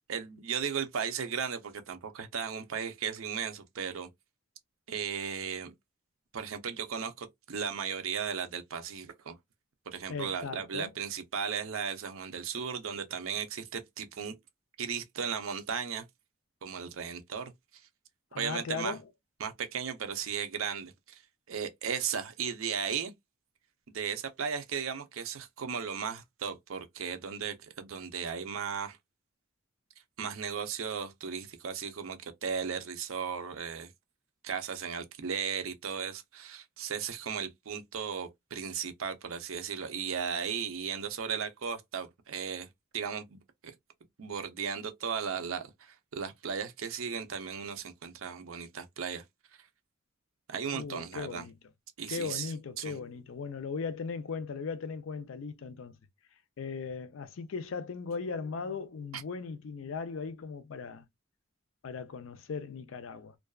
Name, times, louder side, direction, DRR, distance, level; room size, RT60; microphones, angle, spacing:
voice 1, 0.1-4.1 4.9-5.7 6.3-9.3 9.9-14.4 14.8-16.0 16.6-17.5 18.4-19.0 19.4-21.2 21.5-23.1 23.9-29.0 30.2-33.9 34.4-42.7 42.9-43.7 44.2-49.2 50.5-51.4 52.0-52.5 52.8-53.0 59.1-59.2, right 7 dB, 85° right, 0.6 m, -36 dB
voice 2, 10.1-10.9 18.3-19.0 50.7-51.5 52.1-56.0 56.6-61.0 61.8-63.3, left 5 dB, 70° left, 0.4 m, -38 dB
2.5 x 2.3 x 2.2 m
head